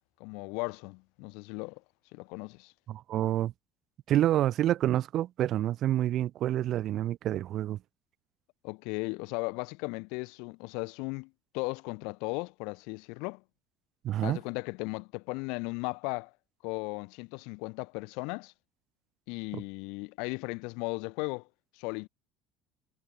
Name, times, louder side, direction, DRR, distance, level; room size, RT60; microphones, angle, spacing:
voice 1, 0.2-1.8 2.1-2.7 8.6-13.4 14.2-16.3 16.6-18.5 19.3-21.5 21.8-22.1, left 31 dB, 75° left, 0.6 m, -36 dB
voice 2, 2.9-3.5 4.1-7.8 14.0-14.4 19.5-19.6, right 12 dB, 45° right, 0.5 m, -28 dB
cardioid pair, 150°, 0 cm